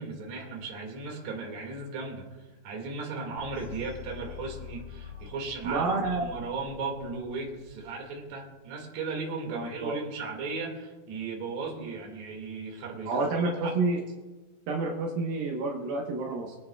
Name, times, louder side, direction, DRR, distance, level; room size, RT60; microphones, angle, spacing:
voice 1, 0.0-2.2 2.6-13.2 13.6-13.7, right 4 dB, 50° right, 0 dB, 3.1 m, -36 dB
sound 1, 3.4-8.3, left 10 dB, 85° left, 3.1 m, -46 dB
voice 2, 5.6-6.3 9.5-9.9 13.1-14.0 14.7-16.6, right 3 dB, 75° right, -2 dB, 3.0 m, -29 dB
24.0 x 9.1 x 2.3 m, 1.2 s
omnidirectional pair, 4.3 m